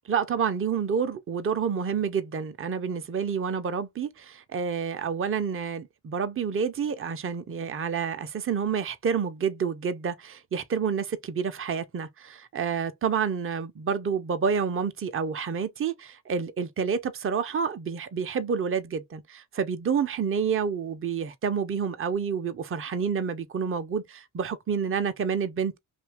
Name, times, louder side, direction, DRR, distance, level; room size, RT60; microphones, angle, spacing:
voice 1, 0.1-25.8, right 6 dB, 30° right, 0.6 m, -29 dB
2.7 x 2.5 x 3.4 m
cardioid pair, 60°, 47 cm